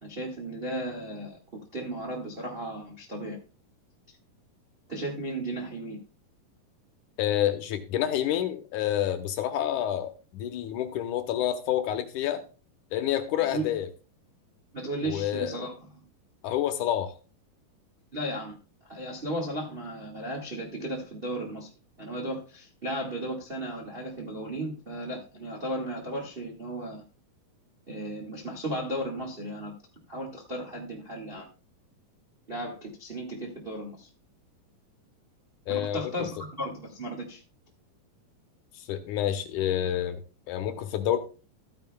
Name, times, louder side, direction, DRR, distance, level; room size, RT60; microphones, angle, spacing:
voice 1, 0.0-1.4 1.7-3.4 4.9-6.0 13.4-13.7 14.7-16.0 18.1-18.6 18.9-21.7 22.0-27.0 27.9-29.7 30.1-31.5 32.5-34.1 35.7-37.4, right 1 dB, 85° right, 0 dB, 0.5 m, -35 dB
voice 2, 7.2-12.4 12.9-13.9 15.0-15.5 16.4-17.1 35.7-36.1 38.8-40.2 40.5-41.2, left 11 dB, 75° left, 7 dB, 2.0 m, -28 dB
14.0 x 9.5 x 2.2 m, 0.33 s
omnidirectional pair, 4.3 m